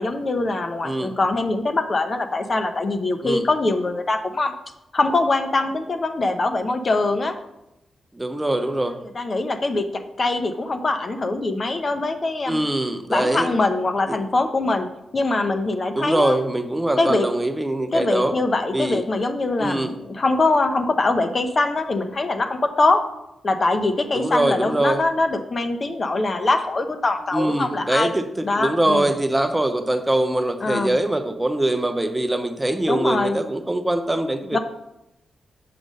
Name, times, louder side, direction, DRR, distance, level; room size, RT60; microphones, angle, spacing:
voice 1, 0.0-4.5 4.9-7.4 9.1-12.6 13.1-14.9 15.1-16.4 17.0-17.3 17.9-23.0 23.4-28.1 28.4-29.1 30.6-30.9 32.9-33.4 34.5-34.6, left 2 dB, 45° left, 7 dB, 0.8 m, -23 dB
voice 2, 8.1-9.0 12.5-13.5 14.1-14.2 15.9-18.3 18.7-19.0 19.6-19.9 24.1-25.0 27.3-34.6, right 1 dB, 15° right, 7 dB, 0.8 m, -23 dB
6.7 x 3.7 x 6.3 m, 0.88 s
cardioid pair, 55°, 0 cm